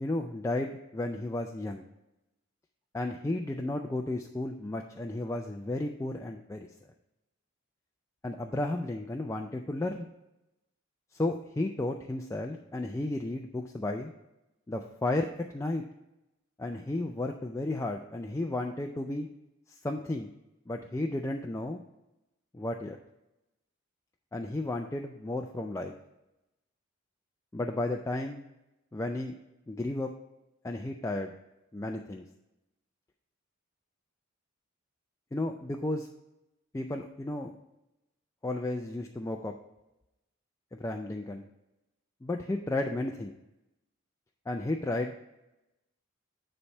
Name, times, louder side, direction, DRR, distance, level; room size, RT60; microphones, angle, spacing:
voice 1, 0.0-1.8 2.9-6.7 8.2-10.1 11.1-14.1 14.7-15.8 16.6-19.3 19.7-20.3 20.7-21.8 22.5-23.0 24.3-25.9 27.5-28.4 28.9-29.3 29.7-30.1 30.6-31.4 31.7-32.3 35.3-36.1 36.7-37.5 38.4-39.5 40.7-41.4 42.2-43.3 44.5-45.2, left 2 dB, 15° left, 3 dB, 0.3 m, -33 dB
9.7 x 3.3 x 5.4 m, 0.94 s
head